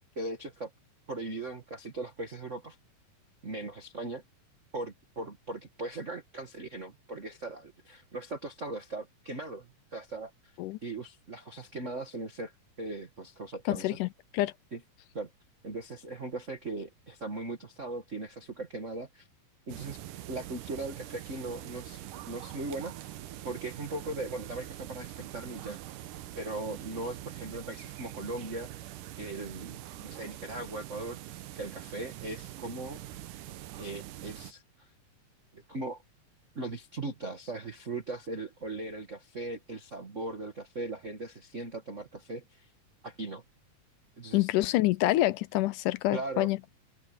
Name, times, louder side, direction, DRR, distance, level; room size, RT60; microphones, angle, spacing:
voice 1, 0.1-0.7 1.1-2.8 3.4-4.2 4.7-10.3 10.8-12.5 12.8-14.0 14.7-14.8 15.1-15.3 15.6-19.3 19.7-20.0 20.3-23.2 23.4-25.8 26.3-28.9 29.2-33.0 33.8-34.9 35.5-36.0 36.5-42.7 43.0-43.4 44.2-44.5 46.1-46.5, right 2 dB, 30° right, 1.4 m, -39 dB
voice 2, 13.7-14.5 44.3-46.6, left 16 dB, 80° left, 2.1 m, -27 dB
sound 1, 19.7-34.5, right 13 dB, 75° right, 2.5 m, -44 dB
omnidirectional pair, 3.9 m